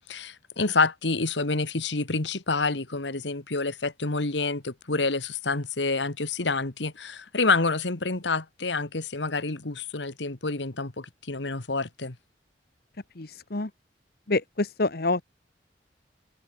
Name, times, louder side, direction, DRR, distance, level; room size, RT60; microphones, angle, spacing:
voice 1, 0.0-12.2, left 3 dB, 80° left, 1.9 m, -28 dB
voice 2, 13.2-13.7 14.3-15.2, left 2 dB, 60° left, 1.3 m, -27 dB
head